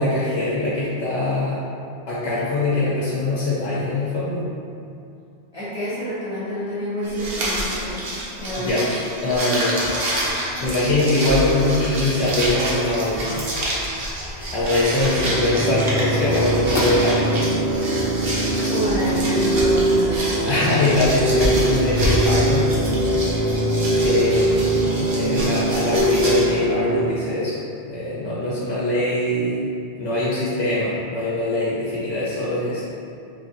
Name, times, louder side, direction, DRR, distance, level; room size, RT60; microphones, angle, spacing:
voice 1, 0.0-1.6 2.1-4.4 8.6-8.8 9.2-9.8 10.1-13.4 14.2-17.4 20.5-22.7 24.0-27.6 27.9-29.7 29.9-32.8, left 2 dB, 90° left, -8 dB, 1.0 m, -22 dB
voice 2, 5.5-8.0 8.4-8.9 18.7-20.6, equal, 10° left, -12 dB, 1.1 m, -28 dB
sound 1, 7.0-26.5, right 1 dB, 65° right, 1.0 m, -28 dB
sound 2, 13.3-21.6, left 2 dB, 65° left, 0.8 m, -35 dB
sound 3, 15.1-27.0, right 1 dB, 25° left, 0.4 m, -22 dB
3.3 x 2.5 x 3.8 m, 2.5 s
omnidirectional pair, 1.1 m